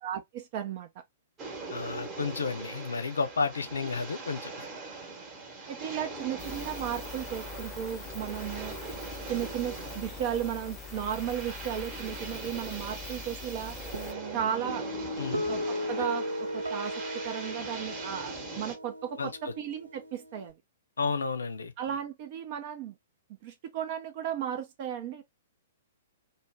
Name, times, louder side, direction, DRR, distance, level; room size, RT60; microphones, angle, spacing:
voice 1, 0.0-0.9 5.7-8.8 9.3-13.8 14.3-14.8 15.5-15.6 15.9-16.9 17.2-20.5 21.8-22.9 23.4-25.2, right 9 dB, 40° right, 0.5 m, -35 dB
sound 1, 1.4-18.8, right 3 dB, 25° right, 0.9 m, -41 dB
voice 2, 1.7-4.7 15.2-15.4 19.2-19.5 21.0-21.7, left 4 dB, 70° left, 0.5 m, -32 dB
sound 2, 6.4-14.1, left 6 dB, 15° left, 0.5 m, -44 dB
Guitar, 13.9-20.5, equal, 80° right, 0.9 m, -36 dB
2.4 x 2.1 x 3.2 m
figure-of-eight pair, 110°, 0 cm